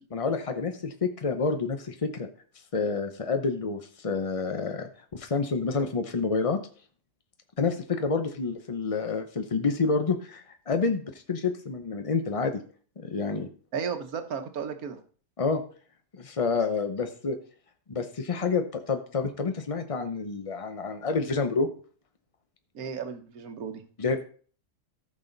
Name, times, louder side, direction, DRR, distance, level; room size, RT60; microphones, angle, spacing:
voice 1, 0.1-2.3 2.7-6.6 7.6-11.0 11.3-12.6 13.0-13.5 15.4-15.6 16.1-17.4 17.9-21.7 24.0-24.2, left 4 dB, 50° left, 7 dB, 0.4 m, -28 dB
voice 2, 13.7-15.0 22.7-23.8, right 6 dB, 65° right, 7 dB, 1.6 m, -34 dB
14.0 x 6.2 x 3.9 m, 0.43 s
omnidirectional pair, 1.7 m